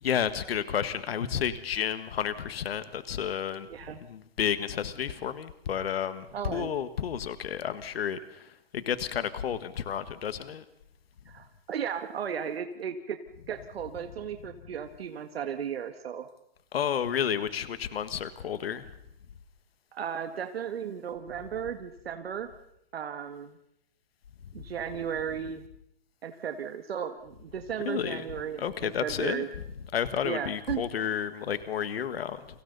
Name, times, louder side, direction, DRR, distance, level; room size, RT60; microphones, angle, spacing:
voice 1, 0.0-3.7 4.0-10.6 16.7-18.9 27.8-28.2 28.6-29.4 29.9-32.5, left 8 dB, 70° left, 12 dB, 1.7 m, -31 dB
voice 2, 6.3-6.7 11.3-13.2 13.5-16.3 19.9-22.5 22.9-23.6 24.5-25.7 26.2-29.5 30.2-30.8, right 8 dB, 70° right, 7 dB, 1.9 m, -35 dB
30.0 x 25.0 x 4.1 m, 0.78 s
hypercardioid pair, 165°, 31 cm